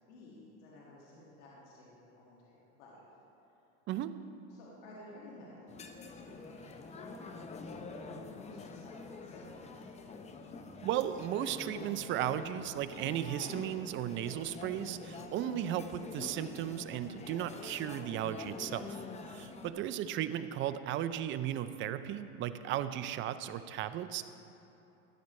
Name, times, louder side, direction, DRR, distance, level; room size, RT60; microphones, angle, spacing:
voice 1, 0.1-3.0 4.5-8.9 9.2-9.8 19.6-19.7, left 1 dB, 80° left, -6 dB, 2.0 m, -54 dB
sound 1, 5.7-19.7, left 4 dB, 20° left, 0.6 m, -46 dB
voice 2, 10.8-18.9 19.3-24.2, right 11 dB, 35° right, 12 dB, 0.4 m, -35 dB
13.5 x 9.6 x 3.2 m, 3.0 s
supercardioid pair, 115°, 35 cm